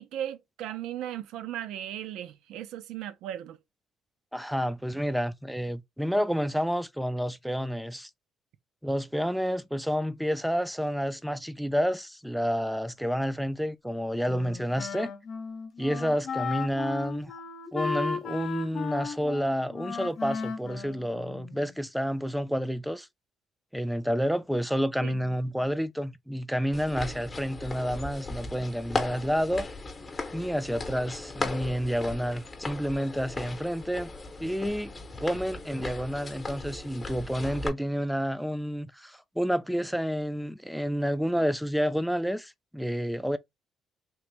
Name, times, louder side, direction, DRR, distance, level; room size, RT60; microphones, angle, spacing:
voice 1, 0.0-3.6 25.0-25.2, right 11 dB, 85° right, 0.4 m, -37 dB
voice 2, 4.3-8.1 8.8-15.1 15.8-17.3 17.7-23.1 23.7-29.7 30.3-34.1 34.4-34.9 35.2-43.4, equal, ahead, 0.3 m, -29 dB
Wind instrument woodwind instrument, 14.2-21.7, left 5 dB, 60° left, 0.7 m, -35 dB
sound 1, 26.7-37.7, left 3 dB, 30° left, 0.8 m, -37 dB
3.0 x 2.5 x 3.1 m
cardioid pair, 105°, 0 cm